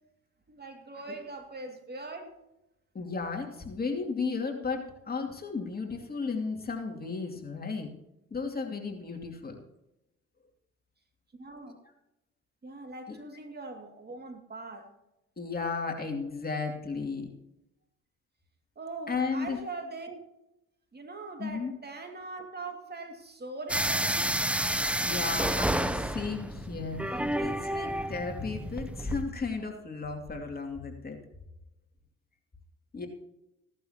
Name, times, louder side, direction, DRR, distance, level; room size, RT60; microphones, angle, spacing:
voice 1, 0.5-2.3 11.3-11.8 12.6-14.9 18.8-20.2 20.9-24.3, right 3 dB, 35° right, 4 dB, 2.5 m, -41 dB
voice 2, 2.9-7.9 8.3-9.6 13.1-13.2 15.4-17.3 19.1-19.6 21.4-21.7 25.0-31.2 32.9-33.1, left 4 dB, 30° left, 3 dB, 2.6 m, -34 dB
sound 1, 23.7-29.2, right 1 dB, 5° right, 0.6 m, -30 dB
16.5 x 11.5 x 3.0 m, 0.90 s
cardioid pair, 90°, 30 cm